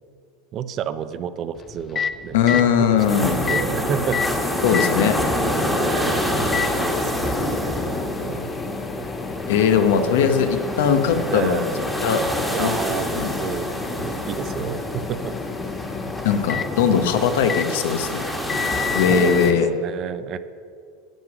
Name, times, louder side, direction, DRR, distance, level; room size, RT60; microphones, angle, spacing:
voice 1, 0.5-4.6 5.7-6.4 6.7-8.5 11.3-11.8 12.5-13.7 14.0-15.3 16.8-17.3 17.7-17.8 18.7-20.4, right 8 dB, 40° right, 13 dB, 0.5 m, -31 dB
Microwave oven, 1.5-19.6, left 6 dB, 25° left, 0.4 m, -32 dB
voice 2, 2.3-3.4 4.6-5.2 9.5-11.7 12.0-12.2 12.6-12.7 13.1-13.3 16.2-18.2 18.9-19.7, left 7 dB, 80° left, 7 dB, 0.9 m, -19 dB
sound 1, 3.0-19.5, left 1 dB, 5° left, 1.4 m, -27 dB
9.2 x 7.7 x 6.1 m, 2.2 s
supercardioid pair, 130°, 0 cm